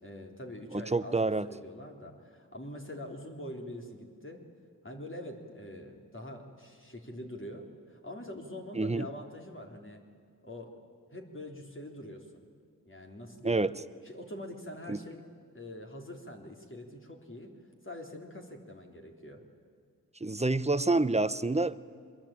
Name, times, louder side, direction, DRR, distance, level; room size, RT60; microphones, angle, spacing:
voice 1, 0.0-4.4 4.8-10.0 10.4-10.8 11.1-12.5 12.9-13.6 14.0-15.2 15.5-17.5 17.8-19.4, left 1 dB, 35° left, 1 dB, 3.5 m, -44 dB
voice 2, 0.7-1.5 8.7-9.1 13.4-13.8 14.9-15.0 20.2-21.8, right 2 dB, 20° right, 15 dB, 0.9 m, -28 dB
24.5 x 21.5 x 8.9 m, 2.2 s
cardioid pair, 45°, 34 cm